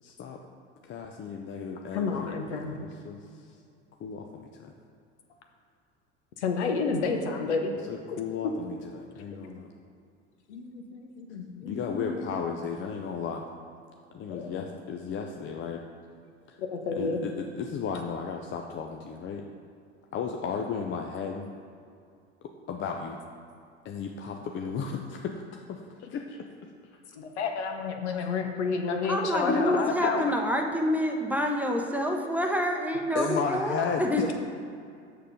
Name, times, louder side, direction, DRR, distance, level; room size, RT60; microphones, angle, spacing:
voice 1, 0.0-0.4 0.8-3.5 4.0-4.7 7.9-9.7 11.6-13.4 14.1-15.8 16.5-16.6 17.0-19.4 20.1-21.5 22.7-23.2 23.8-26.4 29.3-30.1 33.1-34.3, left 6 dB, 35° left, 2 dB, 0.6 m, -34 dB
voice 2, 1.9-2.7 6.4-7.7 8.1-8.5 9.3-9.5 10.5-12.4 14.3-14.6 16.7-17.2 27.2-30.3, left 4 dB, 70° left, 4 dB, 0.9 m, -30 dB
voice 3, 29.1-34.3, equal, 5° right, 2 dB, 0.8 m, -27 dB
6.6 x 6.3 x 5.1 m, 2.4 s
figure-of-eight pair, 70°, 35 cm